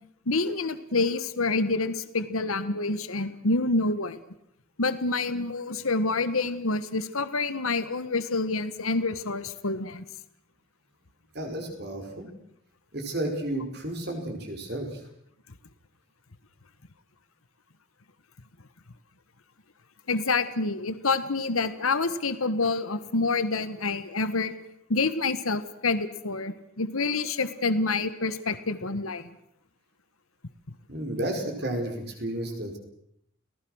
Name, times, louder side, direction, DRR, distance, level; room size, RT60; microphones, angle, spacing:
voice 1, 0.3-4.2 4.8-10.0 20.1-24.5 24.9-29.2, left 3 dB, 85° left, 12 dB, 1.4 m, -27 dB
voice 2, 11.3-12.3 12.9-15.0 30.9-32.8, right 1 dB, 50° right, 4 dB, 4.9 m, -32 dB
30.0 x 19.0 x 6.4 m, 0.74 s
head